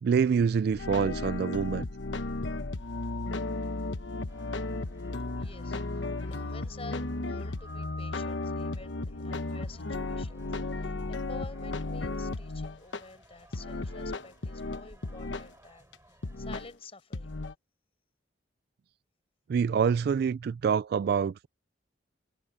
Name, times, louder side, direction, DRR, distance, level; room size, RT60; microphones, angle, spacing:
voice 1, 0.0-1.9 19.5-21.5, right 6 dB, 55° right, 0.3 m, -26 dB
sound 1, 0.7-13.0 13.5-15.5 15.9-16.0 16.2-16.7 17.1-17.5, left 2 dB, 80° left, 1.1 m, -34 dB
sound 2, 4.3-16.6, right 1 dB, 15° right, 5.8 m, -59 dB
voice 2, 5.4-17.4, left 3 dB, 35° left, 5.1 m, -50 dB
head